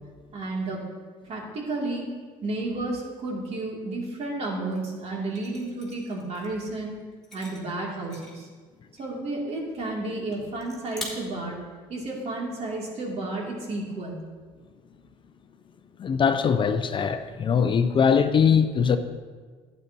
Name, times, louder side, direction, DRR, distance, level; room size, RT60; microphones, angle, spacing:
voice 1, 0.3-0.8 1.3-2.1 2.4-6.9 7.3-8.5 9.0-11.6 11.9-14.2, right 2 dB, 50° right, 2.6 m, -32 dB
sound 1, 4.7-4.8 5.3-6.6 7.1-8.6 9.0-9.2 9.5-10.0 10.3-10.4 10.6-11.0, left 2 dB, ahead, 3.1 m, -43 dB
voice 2, 16.0-19.0, left 6 dB, 40° left, 0.5 m, -21 dB
12.0 x 9.4 x 2.9 m
supercardioid pair, 85°, 14 cm